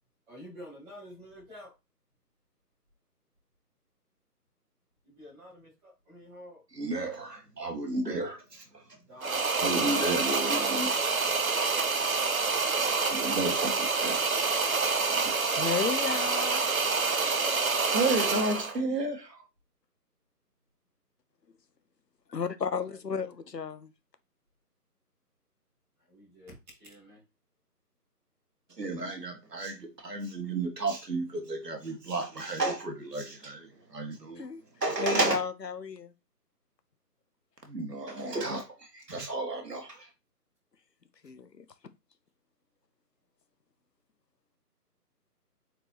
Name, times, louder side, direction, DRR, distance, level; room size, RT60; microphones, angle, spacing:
voice 1, 0.3-1.7 5.0-6.6 8.9-10.1 16.9-18.1 22.9-23.5 26.1-27.2, equal, 5° right, 3.0 m, -49 dB
voice 2, 6.7-8.6 9.5-11.1 13.0-14.5 15.2-15.4 17.9-19.2 28.8-34.4 34.8-35.4 37.7-40.1, right 2 dB, 80° right, 2.3 m, -32 dB
sound 1, 9.2-18.8, right 4 dB, 60° right, 1.1 m, -27 dB
voice 3, 15.6-16.6 22.3-23.9 34.4-34.6 35.0-36.1 41.2-41.6, left 5 dB, 85° left, 1.0 m, -33 dB
6.7 x 4.6 x 3.1 m
figure-of-eight pair, 170°, 48 cm